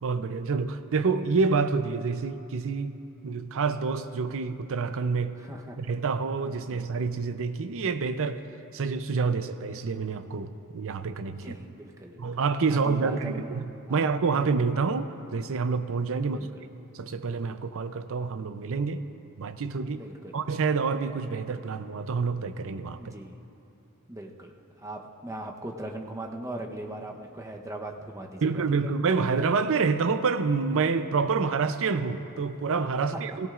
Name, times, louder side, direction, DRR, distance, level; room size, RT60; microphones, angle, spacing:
voice 1, 0.0-3.0 3.2-5.4 5.8-8.4 8.7-11.6 12.2-16.5 16.9-19.0 19.4-20.0 20.3-23.1 28.4-33.5, right 4 dB, 65° right, 10 dB, 0.6 m, -27 dB
voice 2, 5.4-5.8 6.7-6.8 11.4-12.4 12.7-13.6 13.9-14.1 16.2-16.5 19.9-20.4 23.0-23.4 24.1-24.5 24.8-28.9 33.1-33.2, right 1 dB, 15° right, 1 dB, 0.8 m, -39 dB
17.5 x 16.5 x 2.5 m, 2.7 s
head